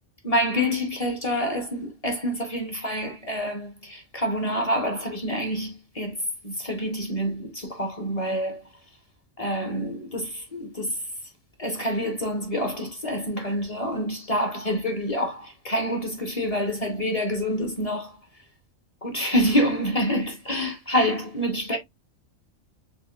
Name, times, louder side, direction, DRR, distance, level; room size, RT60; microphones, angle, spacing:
voice 1, 0.2-8.6 9.4-11.1 11.6-18.2 19.0-21.8, equal, 35° left, 0.7 m, -27 dB
4.2 x 3.2 x 2.3 m
omnidirectional pair, 1.4 m